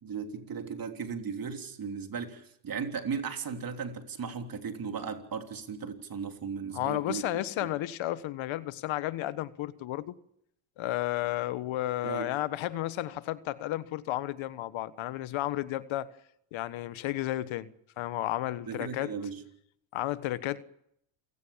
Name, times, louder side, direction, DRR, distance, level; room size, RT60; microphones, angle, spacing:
voice 1, 0.0-7.3 7.6-7.7 12.0-12.3 18.7-19.4, right 6 dB, 45° right, 3.4 m, -36 dB
voice 2, 6.7-10.1 10.8-16.1 16.5-17.7 18.0-19.1 19.9-20.6, left 15 dB, 65° left, 1.4 m, -32 dB
28.0 x 17.0 x 7.3 m
supercardioid pair, 80°, 49 cm